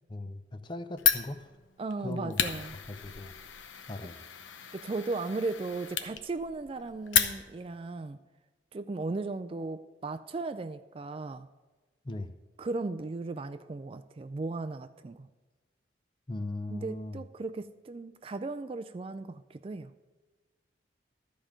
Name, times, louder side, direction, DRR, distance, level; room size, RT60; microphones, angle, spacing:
voice 1, 0.1-1.5 2.0-2.4 2.9-3.4 3.9-4.2 12.0-12.3 16.3-17.3, left 2 dB, 25° left, 9 dB, 0.6 m, -39 dB
Fire, 1.0-7.8, left 8 dB, 85° left, 0.8 m, -33 dB
voice 2, 1.8-2.7 4.7-8.2 8.7-11.5 12.6-15.3 16.7-19.9, right 3 dB, 30° right, 10 dB, 0.3 m, -36 dB
13.0 x 5.1 x 7.3 m, 1.2 s
head